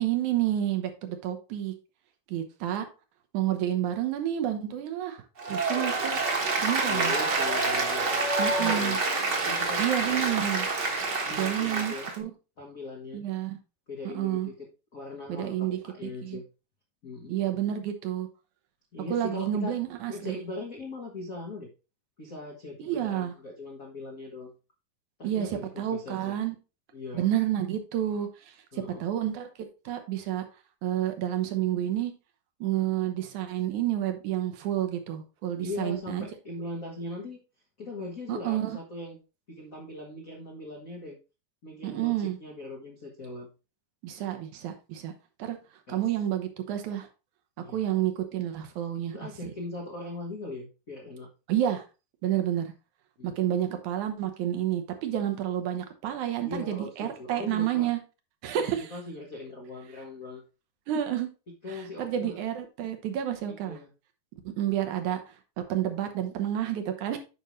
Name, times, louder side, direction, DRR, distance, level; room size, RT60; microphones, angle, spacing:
voice 1, 0.0-1.7 2.3-2.9 3.3-6.2 6.6-7.1 8.4-9.0 9.8-10.7 11.3-12.3 13.1-13.6 14.0-14.5 15.3-16.4 17.3-18.3 19.1-20.4 22.8-23.3 25.2-26.6 27.1-30.4 30.8-32.1 32.6-36.3 38.3-38.8 41.8-42.4 44.0-45.1 45.4-45.6 45.9-47.1 47.7-49.2 49.4-49.5 51.5-51.8 52.2-52.7 53.2-58.0 58.4-58.9 60.9-61.3 61.7-63.8 64.5-65.4 65.7-67.2, right 11 dB, 70° right, 6 dB, 2.3 m, -30 dB
Applause, 5.4-12.2, right 3 dB, 45° right, 1.5 m, -27 dB
voice 2, 6.9-9.0 9.4-10.4 11.2-12.1 12.6-13.2 13.9-14.7 14.9-16.4 17.0-17.3 18.9-19.8 20.1-21.7 22.2-24.5 25.2-26.4 26.9-27.3 28.7-29.1 35.6-37.4 37.8-39.2 39.5-41.2 41.6-43.5 45.9-46.0 47.6-47.8 49.1-51.3 53.2-53.4 56.4-57.9 58.6-60.4 61.6-62.4 63.5-63.9, left 2 dB, 60° left, 0 dB, 0.8 m, -40 dB
9.0 x 5.3 x 3.1 m, 0.30 s
omnidirectional pair, 3.7 m